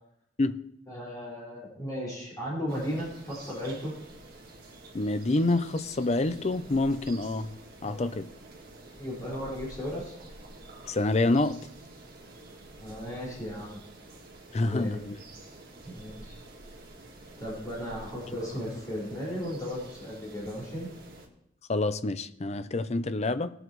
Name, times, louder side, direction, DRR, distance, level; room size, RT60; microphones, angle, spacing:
voice 1, 0.9-3.9 7.8-8.1 9.0-10.1 12.8-13.8 14.5-15.0 15.8-16.4 17.4-20.9, equal, 20° left, -6 dB, 5.2 m, -36 dB
sound 1, 2.7-21.3, right 2 dB, 50° right, 1.8 m, -49 dB
voice 2, 4.9-7.5 7.8-8.3 10.8-11.6 14.5-15.2 21.7-23.5, left 2 dB, 35° left, 11 dB, 0.6 m, -27 dB
19.5 x 7.9 x 3.1 m, 0.76 s
head